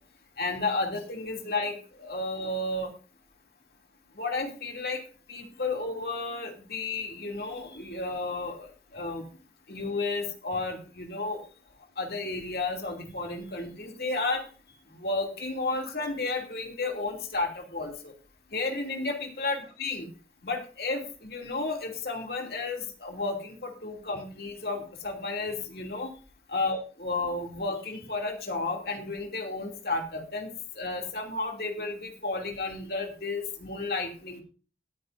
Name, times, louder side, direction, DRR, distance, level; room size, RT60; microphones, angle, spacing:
voice 1, 0.4-2.9 4.1-5.0 5.3-9.2 9.7-11.4 12.0-14.5 14.9-18.1 18.5-20.1 20.4-26.1 26.5-34.4, left 3 dB, 60° left, 2 dB, 2.8 m, -32 dB
20.5 x 9.6 x 2.6 m, 0.37 s
head